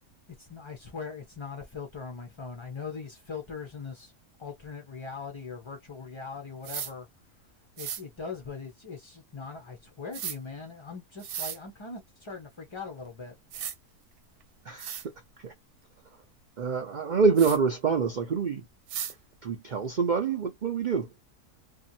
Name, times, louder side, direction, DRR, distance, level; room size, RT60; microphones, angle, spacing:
voice 1, 0.4-4.1 4.4-7.1 7.8-13.4, left 5 dB, 40° left, 0.4 m, -40 dB
sound 1, 6.6-6.9 7.8-8.0 10.1-10.4 11.2-11.6 13.0-13.1 13.5-13.8 14.4-14.5 14.8-15.1 17.4-17.6 18.9-19.1, right 9 dB, 85° right, 1.2 m, -35 dB
voice 2, 16.6-18.6 19.4-21.1, right 5 dB, 70° right, 0.4 m, -26 dB
2.7 x 2.4 x 2.6 m
omnidirectional pair, 1.6 m